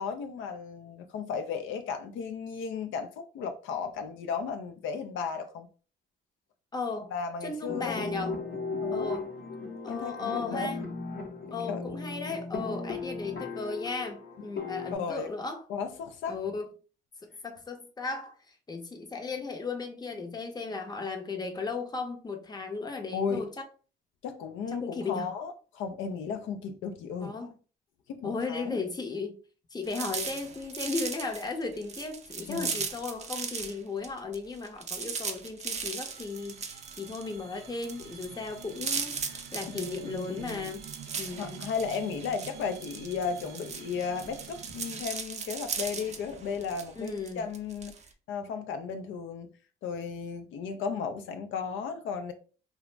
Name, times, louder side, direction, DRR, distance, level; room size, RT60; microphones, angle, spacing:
voice 1, 0.0-5.7 7.1-8.1 8.8-9.1 9.9-10.7 11.7-11.8 14.9-15.3 15.7-16.4 23.1-23.4 24.2-27.3 28.1-28.8 32.5-32.8 39.7-40.7 41.2-47.9 48.3-49.5 49.8-52.3, left 6 dB, 75° left, 0.4 m, -35 dB
voice 2, 6.7-7.1 7.4-8.4 8.9-9.3 9.8-10.8 11.5-15.6 16.3-16.7 17.4-23.6 24.7-25.3 27.2-27.5 28.2-29.3 29.7-40.9 41.2-41.7 47.0-47.4, left 4 dB, 20° left, 0.6 m, -36 dB
sound 1, 7.7-15.0, left 4 dB, 55° left, 0.8 m, -36 dB
sound 2, 29.8-33.8 34.0-48.1, right 5 dB, 35° right, 0.4 m, -38 dB
sound 3, 35.7-45.0, right 8 dB, 85° right, 0.5 m, -48 dB
2.4 x 2.0 x 3.1 m
cardioid pair, 90°, 20 cm